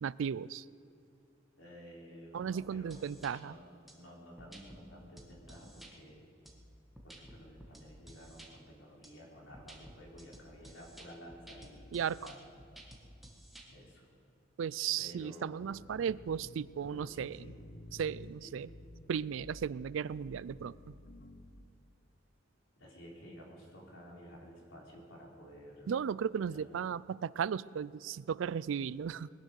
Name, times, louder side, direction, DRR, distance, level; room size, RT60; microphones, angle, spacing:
voice 1, 0.0-0.6 2.3-3.5 11.9-12.2 14.6-17.5 17.9-18.7 19.1-20.9 25.9-29.3, right 7 dB, 80° right, 20 dB, 0.4 m, -35 dB
voice 2, 1.6-3.6 3.9-6.2 7.0-12.4 13.7-14.1 15.0-15.8 16.9-17.6 18.3-18.6 22.8-25.9 26.4-26.7, equal, 80° left, -2 dB, 3.8 m, -52 dB
sound 1, 2.6-3.3 3.9-4.0 4.4-4.8 5.2-5.9 6.5-8.5 9.0-9.1 9.5-13.7, right 1 dB, ahead, 1.7 m, -53 dB
sound 2, 15.7-21.7, left 1 dB, 55° left, 1.0 m, -53 dB
20.5 x 10.5 x 6.4 m, 2.7 s
head